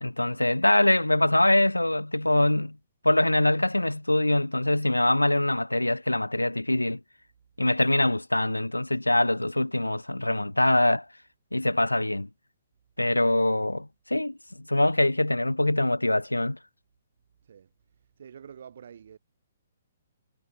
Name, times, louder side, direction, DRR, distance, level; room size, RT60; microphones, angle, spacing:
voice 1, 0.0-2.8 3.0-7.0 7.6-11.1 11.5-12.3 13.0-14.4 14.7-16.6, left 1 dB, 85° left, 0.6 m, -23 dB
voice 2, 18.2-19.2, right 8 dB, 50° right, 7.1 m, -47 dB
figure-of-eight pair, 125°, 0 cm